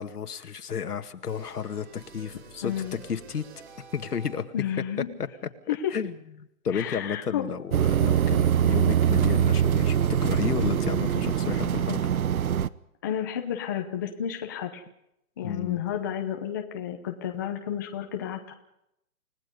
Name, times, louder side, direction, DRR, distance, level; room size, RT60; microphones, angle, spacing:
voice 1, 0.0-2.7 3.0-3.4 3.9-4.4 5.2-5.3 5.7-12.1 15.4-15.8, left 7 dB, 85° left, 8 dB, 2.0 m, -32 dB
Fight Win Tune, 1.3-4.7, right 6 dB, 40° right, 4.8 m, -49 dB
voice 2, 2.6-3.0 4.5-5.1 5.7-5.9 6.7-7.5 13.0-14.8 15.4-18.5, left 10 dB, 15° left, 4 dB, 0.8 m, -31 dB
sound 1, 7.7-12.7, right 9 dB, 65° right, 0.9 m, -23 dB
29.0 x 18.5 x 5.4 m, 0.79 s
hypercardioid pair, 165°, 45 cm